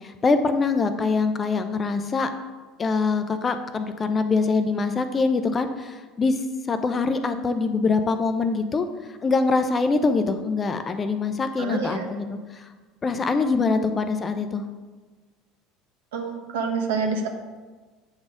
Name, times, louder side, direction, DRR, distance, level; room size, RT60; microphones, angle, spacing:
voice 1, 0.0-2.3 2.8-6.4 6.7-8.9 9.2-12.6 13.0-14.6 17.1-17.3, left 4 dB, 30° left, 9 dB, 0.6 m, -24 dB
voice 2, 11.6-12.1 16.1-17.3, right 5 dB, 70° right, 2 dB, 1.0 m, -27 dB
8.1 x 4.0 x 5.0 m, 1.3 s
hypercardioid pair, 70°, 0 cm